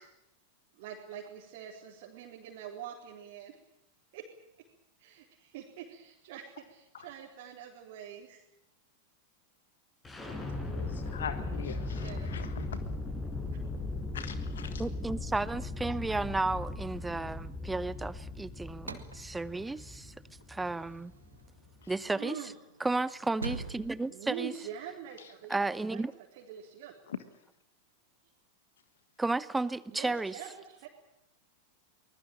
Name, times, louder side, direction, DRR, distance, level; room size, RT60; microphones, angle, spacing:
voice 1, 0.7-3.6 4.1-4.3 4.6-4.7 5.0-8.4 11.8-12.3 22.0-22.6 24.1-25.6 25.9-26.0 26.3-27.0 29.9-30.9, right 9 dB, 50° right, -2 dB, 4.1 m, -45 dB
sound 1, 10.0-21.9, left 2 dB, 15° left, 6.8 m, -38 dB
voice 2, 10.6-12.8 14.1-14.8 21.8-21.9 25.2-25.3 27.1-27.2, left 8 dB, 65° left, 12 dB, 1.5 m, -42 dB
voice 3, 14.8-20.1 20.5-21.1 21.9-22.5 22.8-24.5 25.5-26.1 29.2-30.4, right 3 dB, 10° right, 19 dB, 0.9 m, -33 dB
sound 2, 18.7-25.1, right 3 dB, 80° right, 2.1 m, -46 dB
24.0 x 20.5 x 8.9 m, 0.82 s
figure-of-eight pair, 90°, 0 cm